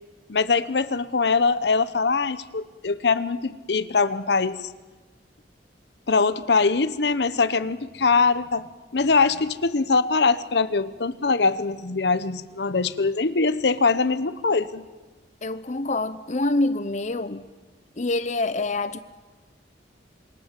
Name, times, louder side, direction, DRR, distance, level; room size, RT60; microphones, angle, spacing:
voice 1, 0.3-4.7 6.1-8.7 8.9-14.8, left 4 dB, 70° left, 14 dB, 0.9 m, -22 dB
voice 2, 15.4-17.4 18.0-19.0, left 2 dB, 40° left, 12 dB, 0.7 m, -26 dB
27.0 x 22.0 x 7.5 m, 1.2 s
head